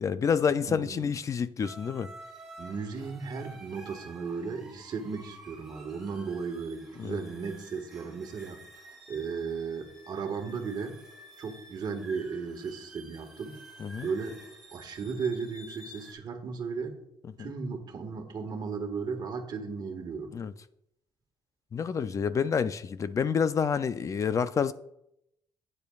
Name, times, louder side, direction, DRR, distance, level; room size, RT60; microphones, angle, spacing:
voice 1, 0.0-2.1 7.0-7.2 13.8-14.1 17.4-17.5 20.3-20.5 21.7-24.7, left 6 dB, 35° left, 0.4 m, -28 dB
voice 2, 0.7-1.1 2.6-8.6 9.1-11.0 11.4-13.6 14.0-14.4 14.7-17.0 17.4-20.3, right 5 dB, 50° right, 1.5 m, -35 dB
sound 1, 1.6-16.1, right 1 dB, 5° right, 3.1 m, -51 dB
15.5 x 8.8 x 2.4 m
cardioid pair, 140°, 9 cm